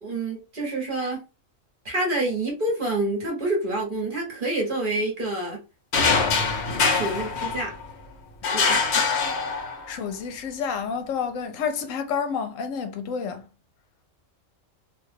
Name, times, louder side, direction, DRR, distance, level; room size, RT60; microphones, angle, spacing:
voice 1, 0.0-1.2 1.8-5.6 6.9-7.7 8.5-9.2, right 2 dB, 45° right, 1.1 m, -28 dB
sound 1, 5.9-7.9 8.4-10.0, left 4 dB, 60° left, 0.9 m, -23 dB
voice 2, 8.6-8.9 9.9-13.4, left 6 dB, 85° left, 1.0 m, -30 dB
2.6 x 2.3 x 3.3 m
omnidirectional pair, 1.4 m